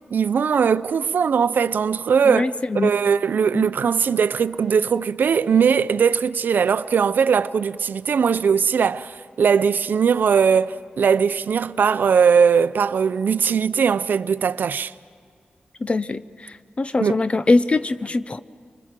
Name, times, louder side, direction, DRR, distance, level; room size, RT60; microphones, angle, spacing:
voice 1, 0.1-2.5 2.7-14.9 17.0-17.2, right 6 dB, 80° right, 0.5 m, -20 dB
voice 2, 2.2-2.9 3.5-3.7 15.8-18.4, left 3 dB, 40° left, 0.6 m, -22 dB
29.5 x 20.5 x 7.5 m
cardioid pair, 65°, 3 cm